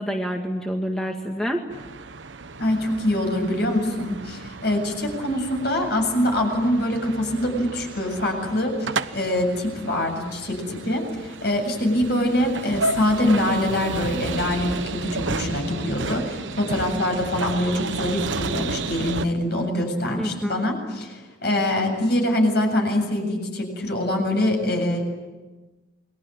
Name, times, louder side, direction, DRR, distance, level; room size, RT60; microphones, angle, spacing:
voice 1, 0.0-1.6 20.2-20.6, equal, 5° left, 1 dB, 2.0 m, -27 dB
sound 1, 1.7-19.2, right 3 dB, 85° right, 1.1 m, -33 dB
voice 2, 2.6-25.0, left 1 dB, 60° left, 3 dB, 7.6 m, -24 dB
29.0 x 22.0 x 9.0 m, 1.2 s
head